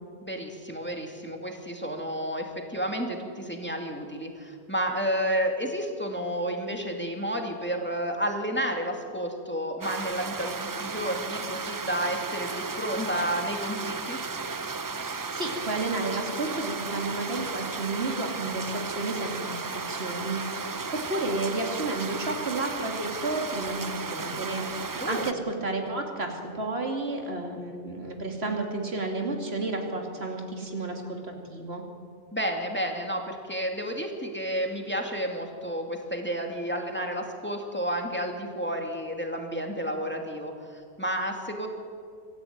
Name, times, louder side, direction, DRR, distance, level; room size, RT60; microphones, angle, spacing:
voice 1, 0.2-14.2 25.0-25.3 32.3-41.7, equal, 10° left, 2 dB, 2.3 m, -31 dB
sound 1, 9.8-25.3, right 4 dB, 30° right, 0.4 m, -34 dB
voice 2, 14.9-31.8, right 2 dB, 70° right, 2 dB, 3.0 m, -32 dB
24.5 x 13.5 x 9.3 m, 2.3 s
omnidirectional pair, 1.1 m